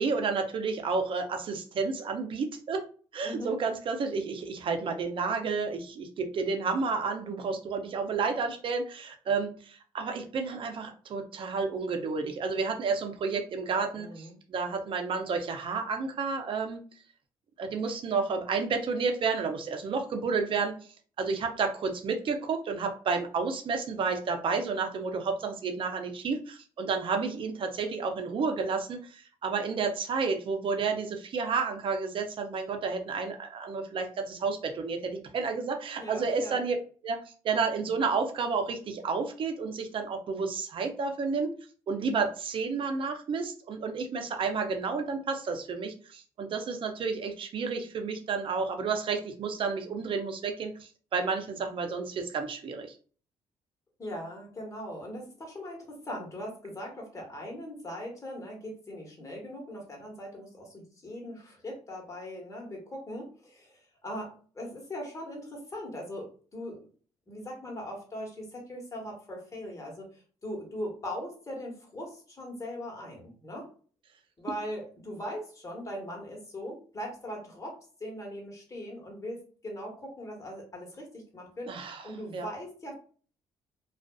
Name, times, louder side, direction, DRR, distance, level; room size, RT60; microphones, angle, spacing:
voice 1, 0.0-2.8 3.1-16.8 17.6-20.7 21.2-36.8 37.0-41.5 41.9-52.9 81.7-82.5, right 4 dB, 55° right, 5 dB, 0.6 m, -31 dB
voice 2, 13.9-14.4 36.0-36.6 54.0-66.8 67.3-73.7 74.4-81.7 82.0-82.9, equal, 30° left, 0 dB, 1.3 m, -40 dB
2.4 x 2.4 x 2.3 m, 0.41 s
supercardioid pair, 75°, 11 cm